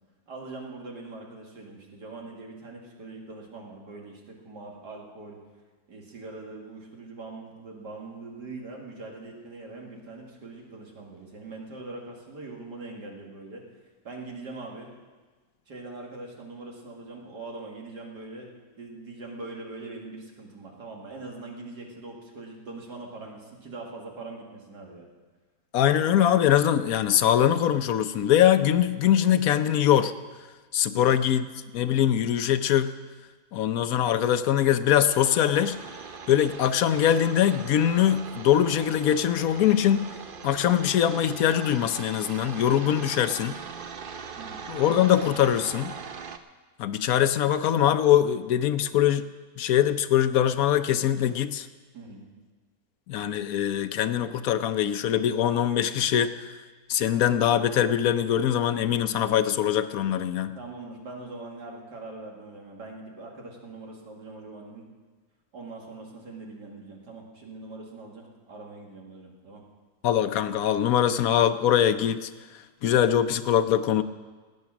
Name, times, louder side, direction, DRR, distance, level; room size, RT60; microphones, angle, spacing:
voice 1, 0.3-5.4 5.9-13.6 14.0-14.9 15.7-25.1 30.9-31.2 44.4-44.6 51.9-52.3 60.5-64.8 65.5-69.6, right 3 dB, 75° right, 0 dB, 2.8 m, -42 dB
voice 2, 25.7-30.1 30.7-31.5 31.7-32.9 33.5-35.8 36.3-40.0 40.4-43.6 44.7-45.9 46.8-49.3 49.6-51.7 53.1-56.5 56.9-60.6 70.0-72.3 72.8-74.0, left 10 dB, 65° left, 11 dB, 1.0 m, -22 dB
sound 1, 35.1-46.4, right 6 dB, 55° right, 0.6 m, -41 dB
17.0 x 9.6 x 6.0 m, 1.4 s
omnidirectional pair, 1.8 m